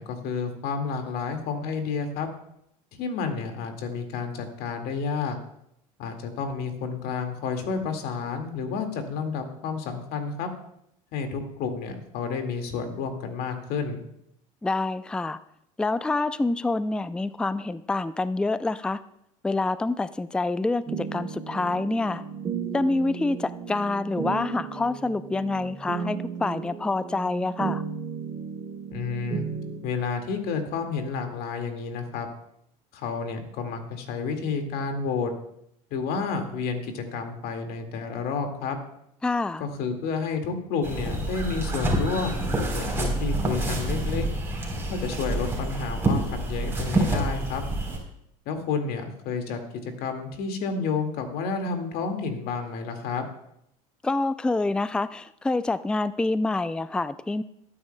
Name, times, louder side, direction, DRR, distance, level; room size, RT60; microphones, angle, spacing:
voice 1, 0.0-2.3 3.0-5.4 6.0-10.5 11.1-14.0 28.9-29.4 29.8-32.3 32.9-35.3 35.9-38.8 39.6-44.3 44.9-47.6 48.5-53.3, left 5 dB, 60° left, 5 dB, 2.0 m, -30 dB
voice 2, 14.6-15.4 15.8-19.0 19.4-22.2 22.7-27.8 39.2-39.6 54.0-57.4, left 2 dB, 5° left, 15 dB, 0.4 m, -27 dB
sound 1, 20.9-29.8, right 7 dB, 30° right, 2.7 m, -34 dB
sound 2, 40.8-48.0, right 1 dB, 15° right, 3.7 m, -27 dB
19.5 x 9.7 x 2.2 m, 0.76 s
hypercardioid pair, 80°, 18 cm